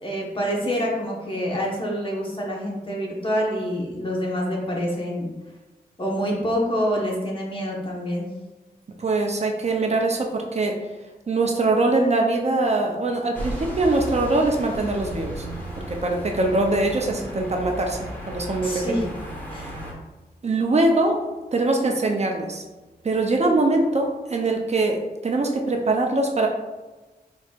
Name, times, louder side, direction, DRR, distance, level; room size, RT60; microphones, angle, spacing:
voice 1, 0.0-5.3 6.0-8.3 18.6-19.1 19.5-19.6, equal, 30° left, -2 dB, 1.2 m, -26 dB
voice 2, 9.0-10.8 11.3-15.5 15.9-19.0 19.5-19.8 20.4-21.2 21.5-22.6 23.0-26.5, right 2 dB, 40° right, 2 dB, 0.6 m, -22 dB
sound 1, 13.3-19.9, equal, 10° left, 1.3 m, -35 dB
4.7 x 4.1 x 2.4 m, 1.2 s
wide cardioid pair, 90°, 16 cm